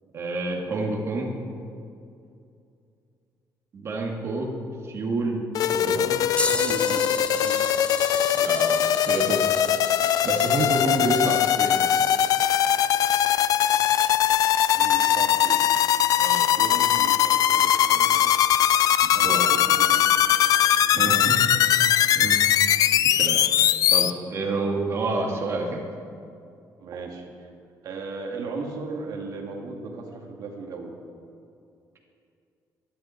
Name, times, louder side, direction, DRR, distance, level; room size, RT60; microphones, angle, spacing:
voice 1, 0.1-1.3 3.7-4.5 4.8-6.0 8.3-9.4 10.2-11.8 16.2-16.4 19.0-19.4 20.9-21.4 22.1-22.7 23.0-23.4 23.9-25.8, right 2 dB, 40° right, 0 dB, 2.4 m, -28 dB
sound 1, 5.5-24.1, left 10 dB, 65° left, 0.5 m, -21 dB
sound 2, 6.4-14.6 15.3-15.4 17.7-17.8 18.8-19.0 20.0-20.1, left 3 dB, 15° left, 0.5 m, -35 dB
voice 2, 6.5-7.1 7.4-7.8 10.2-10.3 14.7-15.7 16.3-18.2 19.1-20.2 20.8-21.4 26.8-27.5 27.8-31.0, right 4 dB, 65° right, 1 dB, 2.3 m, -37 dB
22.5 x 11.5 x 4.6 m, 2.5 s
cardioid pair, 155°, 7 cm